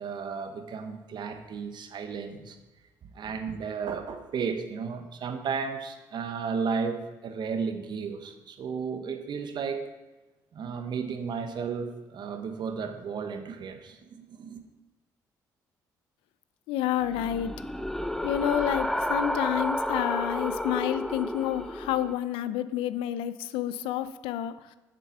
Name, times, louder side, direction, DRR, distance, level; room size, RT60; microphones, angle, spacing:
voice 1, 0.0-2.6 3.1-9.9 10.5-14.6, right 5 dB, 55° right, 7 dB, 1.0 m, -34 dB
voice 2, 16.7-17.5 18.2-24.8, left 11 dB, 80° left, 14 dB, 0.5 m, -29 dB
sound 1, 17.0-22.1, equal, 5° left, 0.5 m, -31 dB
7.5 x 6.7 x 5.7 m, 1.1 s
supercardioid pair, 70°, 9 cm